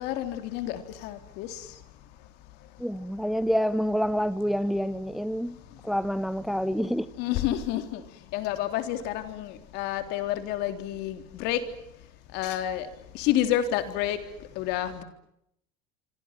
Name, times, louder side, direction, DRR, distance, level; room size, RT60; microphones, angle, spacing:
voice 1, 0.0-1.7 7.2-8.0 8.3-11.6 12.3-12.9 13.1-14.2 14.6-15.0, left 12 dB, 65° left, 3.8 m, -29 dB
voice 2, 2.8-5.6 5.8-7.1, equal, ahead, 1.0 m, -27 dB
26.5 x 26.0 x 7.6 m
supercardioid pair, 110°, 19 cm